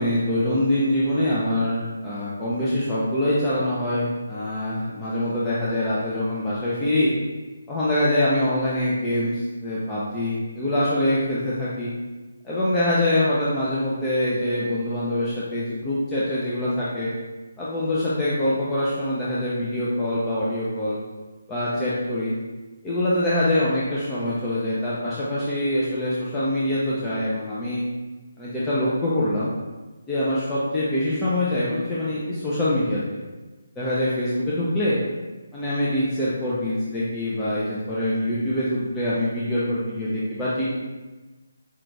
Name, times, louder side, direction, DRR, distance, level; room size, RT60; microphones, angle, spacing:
voice 1, 0.0-7.1 7.7-11.9 12.4-17.1 17.6-21.0 21.5-22.3 22.8-27.8 28.4-29.5 30.1-33.2 33.8-35.0 35.5-40.7, left 1 dB, 15° left, -9 dB, 0.6 m, -24 dB
5.7 x 2.5 x 3.3 m, 1.2 s
figure-of-eight pair, 155°, 0 cm